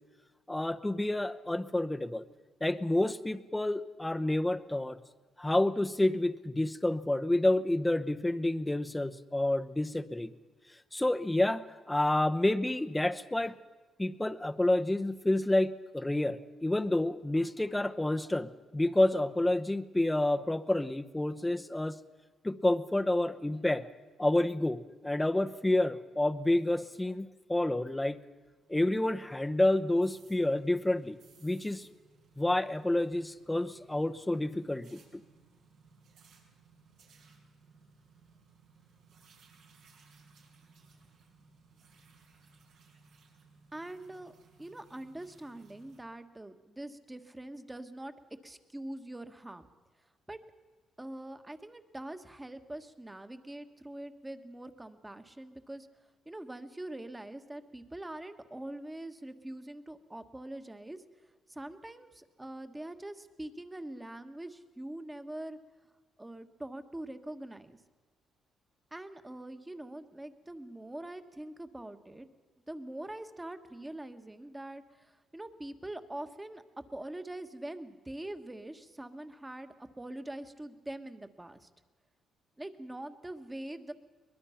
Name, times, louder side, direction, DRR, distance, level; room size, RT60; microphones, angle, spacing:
voice 1, 0.5-2.2 2.6-5.0 5.4-10.3 10.9-13.6 14.0-22.0 22.4-23.9 24.2-28.2 28.7-31.9 32.4-35.0, left 1 dB, 10° left, 10 dB, 0.9 m, -29 dB
sound 1, 28.6-46.0, right 4 dB, 85° right, 5.5 m, -62 dB
voice 2, 43.7-48.1 48.4-49.7 50.3-50.4 51.0-55.9 56.2-61.0 61.5-65.6 66.2-67.8 68.9-72.3 72.7-76.6 76.9-81.7 82.6-83.9, right 1 dB, 15° right, 8 dB, 1.4 m, -43 dB
23.0 x 21.0 x 5.8 m, 1.3 s
cardioid pair, 90°, 0 cm